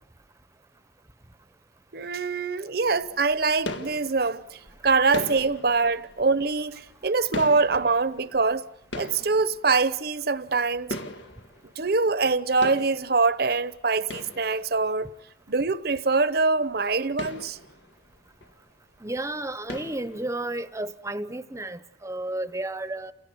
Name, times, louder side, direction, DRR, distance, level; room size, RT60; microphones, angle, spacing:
voice 1, 1.9-8.7 9.0-11.0 11.8-15.1 15.5-17.6, right 4 dB, 55° right, 0.9 m, -24 dB
sound 1, 2.8-12.3 12.6-15.1 15.6-15.7 16.0-16.1 16.3-16.5 16.9-18.7 19.0-19.3 19.7-20.7, left 1 dB, 85° left, 1.7 m, -40 dB
voice 2, 19.0-23.1, right 1 dB, 15° right, 0.9 m, -32 dB
29.5 x 17.0 x 9.4 m
head